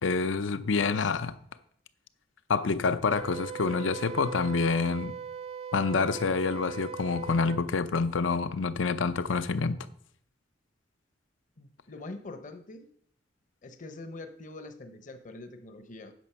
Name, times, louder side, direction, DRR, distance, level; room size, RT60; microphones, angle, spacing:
voice 1, 0.0-1.3 2.5-5.1 5.7-9.8, left 4 dB, 85° left, 13 dB, 0.6 m, -27 dB
Wind instrument woodwind instrument, 3.1-7.6, right 7 dB, 30° right, 0.5 m, -40 dB
voice 2, 11.6-12.9 13.6-16.1, left 2 dB, 45° left, 8 dB, 0.8 m, -44 dB
9.1 x 6.1 x 5.6 m, 0.64 s
head